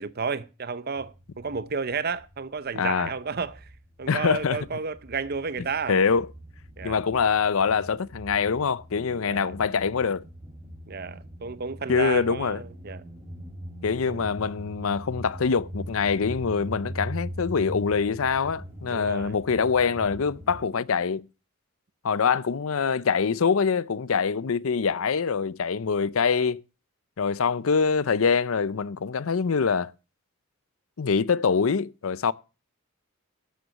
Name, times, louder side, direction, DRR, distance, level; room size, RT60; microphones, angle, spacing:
voice 1, 0.0-3.7 4.0-6.0 6.8-7.0 9.2-9.5 10.9-13.1 14.1-14.3 18.9-19.4, right 5 dB, 45° right, 0.7 m, -32 dB
sound 1, 1.0-2.6 2.9-20.6, equal, 10° right, 2.6 m, -41 dB
voice 2, 2.8-3.1 4.1-4.6 5.9-6.3 6.8-10.2 11.9-12.6 13.8-21.2 22.0-26.6 27.2-29.9 31.0-32.3, left 5 dB, 70° left, 0.5 m, -24 dB
12.0 x 7.8 x 6.5 m
head